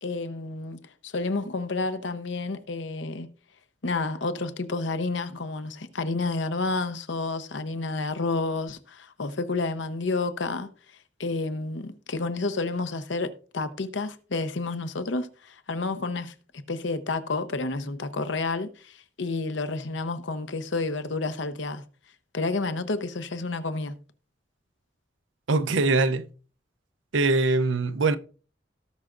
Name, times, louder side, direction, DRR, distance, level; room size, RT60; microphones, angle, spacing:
voice 1, 0.0-3.3 3.8-10.7 11.2-16.3 16.7-21.8 22.3-23.9, left 3 dB, 80° left, 0.8 m, -30 dB
voice 2, 25.5-26.2 27.1-28.2, right 3 dB, 85° right, 0.6 m, -22 dB
17.5 x 6.0 x 2.5 m
head